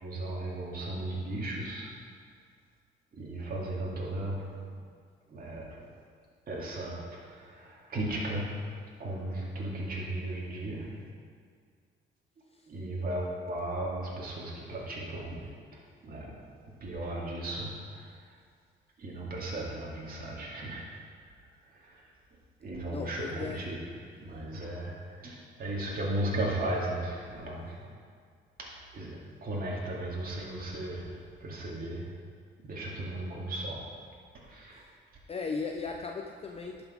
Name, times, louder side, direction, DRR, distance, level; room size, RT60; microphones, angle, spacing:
voice 1, 0.0-1.9 3.2-4.5 5.3-5.8 6.5-8.6 9.0-11.0 12.7-16.3 16.6-18.1 19.0-20.9 21.7-22.0 22.6-23.8 24.1-27.8 28.6-31.1 31.4-32.1 32.6-33.8 34.4-34.9, right 1 dB, 50° right, -4 dB, 2.3 m, -36 dB
voice 2, 22.9-23.7 35.3-36.8, left 4 dB, 30° left, 2 dB, 0.6 m, -36 dB
11.5 x 5.4 x 5.1 m, 2.1 s
cardioid pair, 90°, 20 cm